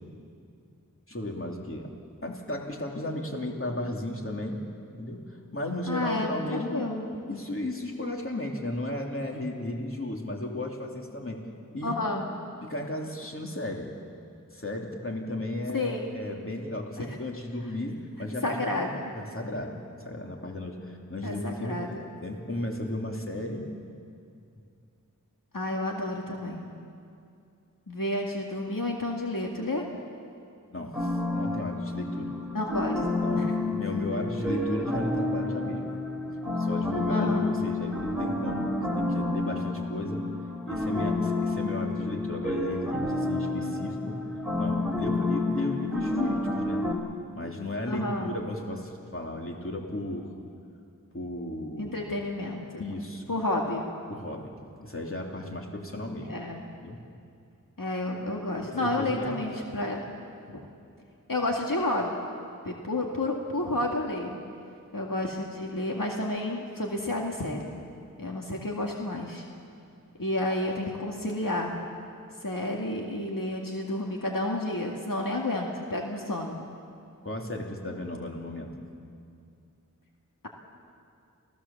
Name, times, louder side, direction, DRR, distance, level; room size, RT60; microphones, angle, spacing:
voice 1, 1.1-1.9 2.2-4.7 4.9-6.9 7.3-11.5 11.7-12.0 12.6-13.9 14.5-19.8 20.0-21.8 22.2-23.7 30.7-32.3 33.2-35.8 36.6-40.2 40.7-44.2 44.6-46.8 47.3-50.3 51.1-51.9 52.8-53.2 54.1-54.5 54.8-56.3 56.8-57.0 58.5-59.3 77.2-78.7, left 1 dB, 40° left, 0 dB, 3.0 m, -34 dB
voice 2, 5.9-7.1 11.8-12.2 15.7-16.0 17.0-17.1 18.4-19.1 21.2-22.0 25.5-26.7 27.9-29.8 32.5-33.6 37.1-37.5 47.9-48.3 51.8-52.8 53.3-53.8 56.2-56.6 57.8-60.0 60.5-60.6 61.3-62.1 62.6-64.4 64.9-67.7 68.2-69.4 70.2-71.8 72.4-76.6, left 1 dB, 75° left, 0 dB, 2.2 m, -30 dB
sound 1, 30.9-46.9, left 2 dB, 5° right, 3.1 m, -30 dB
28.5 x 16.5 x 7.2 m, 2.4 s
wide cardioid pair, 45°, 34 cm